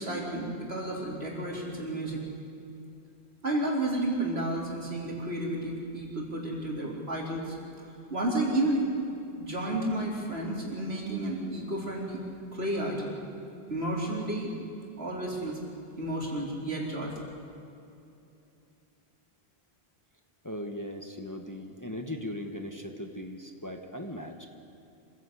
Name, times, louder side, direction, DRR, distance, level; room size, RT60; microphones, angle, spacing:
voice 1, 0.0-2.2 3.4-7.6 8.1-8.9 9.4-12.2 12.5-13.2 13.7-14.5 15.0-15.6 16.0-17.1, right 1 dB, 80° right, -2 dB, 4.4 m, -31 dB
voice 2, 20.4-24.4, left 1 dB, 20° left, 4 dB, 1.4 m, -38 dB
26.5 x 16.0 x 8.4 m, 2.7 s
omnidirectional pair, 1.1 m